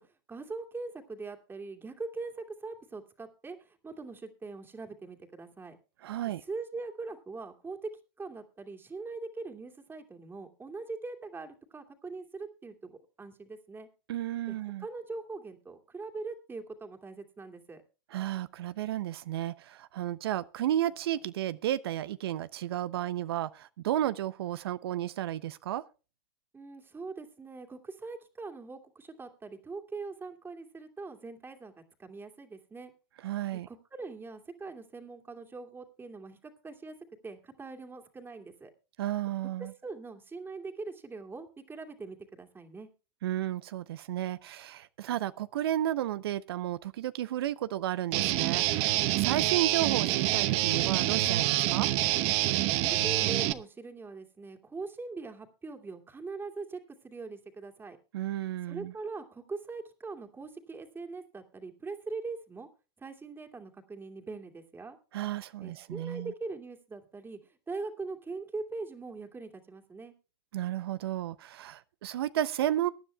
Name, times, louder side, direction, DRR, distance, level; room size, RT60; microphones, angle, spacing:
voice 1, 0.0-5.8 6.5-7.9 8.2-13.9 14.5-17.8 26.5-31.7 32.0-32.9 33.7-37.0 37.2-38.7 39.6-42.9 52.8-58.0 58.7-62.7 63.0-65.0 65.6-70.1, right 3 dB, 15° right, 2.3 m, -42 dB
voice 2, 6.0-6.4 14.1-14.9 18.1-25.8 33.2-33.7 39.0-39.7 43.2-51.9 58.1-58.9 65.1-66.3 70.5-72.9, right 12 dB, 85° right, 0.5 m, -33 dB
Guitar, 48.1-53.5, right 16 dB, 55° right, 0.9 m, -27 dB
22.5 x 10.0 x 2.3 m
hypercardioid pair, 110°, 13 cm